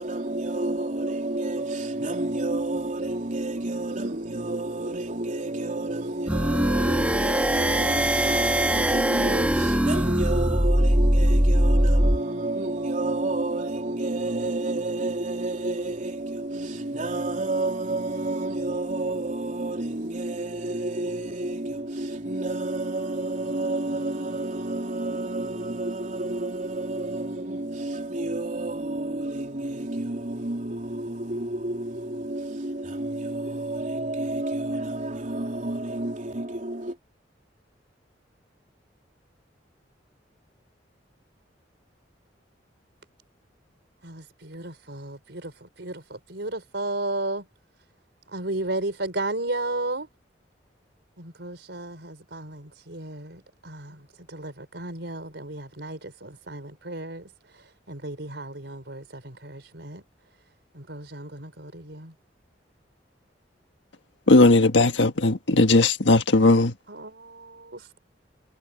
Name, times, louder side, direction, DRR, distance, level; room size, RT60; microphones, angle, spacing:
voice 1, 0.0-37.0, right 2 dB, 45° right, 3.6 m, -30 dB
sound 1, 6.3-12.2, equal, 10° right, 1.5 m, -21 dB
voice 2, 44.0-47.5 48.3-50.1 51.2-60.0 60.7-62.1 66.9-68.0, right 2 dB, 70° right, 5.6 m, -34 dB
voice 3, 64.3-66.7, left 2 dB, 90° left, 1.6 m, -18 dB
head